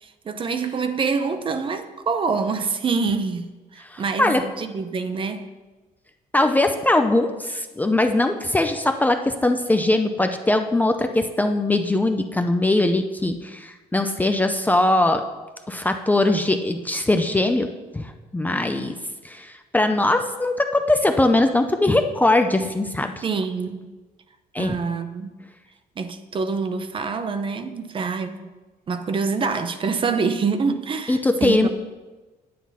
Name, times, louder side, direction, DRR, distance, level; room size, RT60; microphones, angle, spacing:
voice 1, 0.0-5.5 23.2-23.9 24.6-25.3 26.0-28.5 28.9-31.7, right 4 dB, 35° right, 0.7 m, -26 dB
voice 2, 3.9-4.4 6.3-15.2 15.7-17.7 17.9-19.0 19.2-23.2 24.5-24.8 31.1-31.7, left 2 dB, 10° left, 0.5 m, -21 dB
9.4 x 8.9 x 4.1 m
cardioid pair, 125°, 16 cm